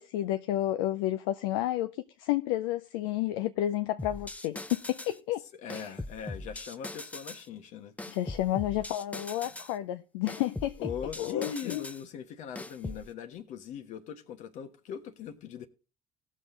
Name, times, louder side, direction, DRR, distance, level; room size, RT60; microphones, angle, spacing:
voice 1, 0.0-1.9 2.2-5.4 5.7-5.9 8.1-10.9 11.2-11.8, left 14 dB, 90° left, 0.5 m, -31 dB
sound 1, 4.0-5.2 5.7-7.5 8.0-9.7 10.3-12.0 12.6-13.1, left 2 dB, 10° left, 0.7 m, -40 dB
voice 2, 5.6-8.2 9.4-9.5 10.8-15.7, left 7 dB, 70° left, 1.3 m, -41 dB
17.5 x 6.4 x 3.8 m
supercardioid pair, 70°, 13 cm